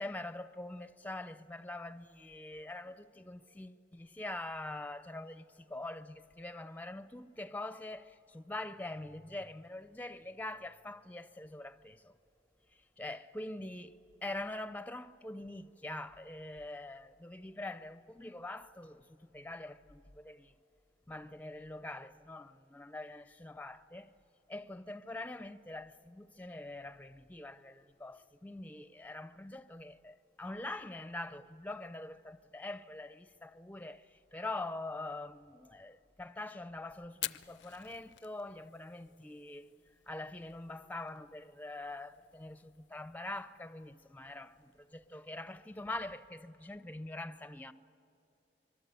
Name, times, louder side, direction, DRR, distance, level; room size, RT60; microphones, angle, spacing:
voice 1, 0.0-12.1 13.0-20.5 21.1-24.1 24.5-39.7 40.1-47.7, left 2 dB, 10° left, 0.5 m, -44 dB
Fire, 37.1-46.3, left 15 dB, 75° left, 0.5 m, -50 dB
25.0 x 23.0 x 8.3 m
head